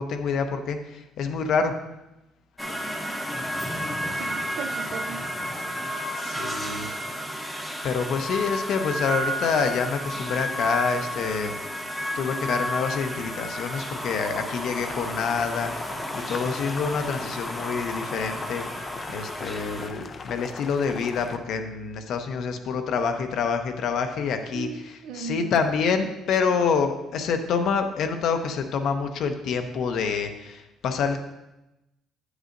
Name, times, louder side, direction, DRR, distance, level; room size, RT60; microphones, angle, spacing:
voice 1, 0.0-1.7 6.2-6.9 7.8-11.5 12.2-18.6 19.1-24.7 25.1-31.2, left 5 dB, 60° left, 6 dB, 0.7 m, -27 dB
sound 1, 2.6-19.9, equal, 5° left, 0.8 m, -32 dB
voice 2, 4.1-5.2 24.5-25.6, right 6 dB, 70° right, 9 dB, 0.6 m, -37 dB
Boiling, 14.6-21.4, left 5 dB, 35° left, 0.4 m, -40 dB
8.6 x 8.0 x 2.6 m, 0.95 s
cardioid pair, 135°, 0 cm